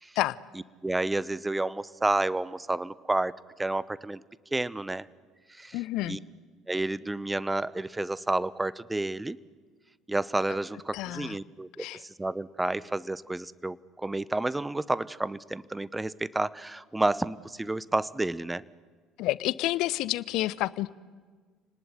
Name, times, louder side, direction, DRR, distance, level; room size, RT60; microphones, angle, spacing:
voice 1, 0.5-4.2 4.5-5.1 5.6-5.8 6.1-6.2 6.7-9.4 10.1-18.6, right 2 dB, 10° right, 20 dB, 0.9 m, -30 dB
voice 2, 5.7-6.2 10.9-11.4 11.8-12.0 19.2-20.9, left 16 dB, 60° left, 20 dB, 0.7 m, -29 dB
29.0 x 19.0 x 9.7 m, 1.5 s
hypercardioid pair, 60°, 0 cm